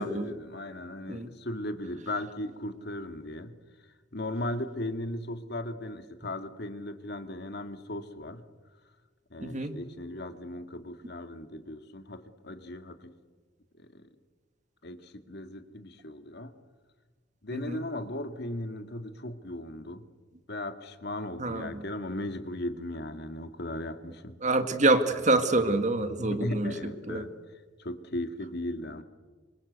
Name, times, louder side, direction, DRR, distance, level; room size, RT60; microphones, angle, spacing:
voice 1, 0.0-3.5 4.1-8.4 9.3-13.1 13.8-14.1 14.8-16.5 17.4-20.1 20.5-24.4 25.9-27.3 27.8-29.0, left 1 dB, 60° left, 8 dB, 2.0 m, -37 dB
voice 2, 9.4-9.8 17.5-17.8 21.4-21.8 24.4-26.7 27.1-27.2, right 2 dB, 40° right, 9 dB, 1.8 m, -26 dB
27.0 x 25.0 x 8.1 m, 1.4 s
head